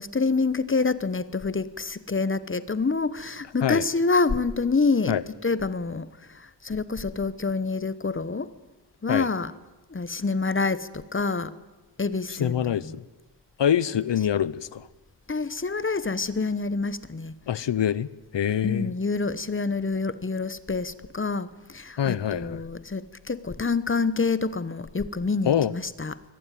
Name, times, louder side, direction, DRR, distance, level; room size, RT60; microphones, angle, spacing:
voice 1, 0.0-8.5 9.0-9.5 9.9-11.6 12.0-13.0 15.3-17.7 18.6-26.2, left 4 dB, 30° left, 16 dB, 1.0 m, -27 dB
voice 2, 12.4-13.0 13.6-14.9 17.5-18.1 18.3-18.9 22.0-22.6 25.5-25.7, left 9 dB, 75° left, 20 dB, 0.8 m, -25 dB
23.5 x 18.0 x 9.2 m, 1.1 s
wide cardioid pair, 105°, 43 cm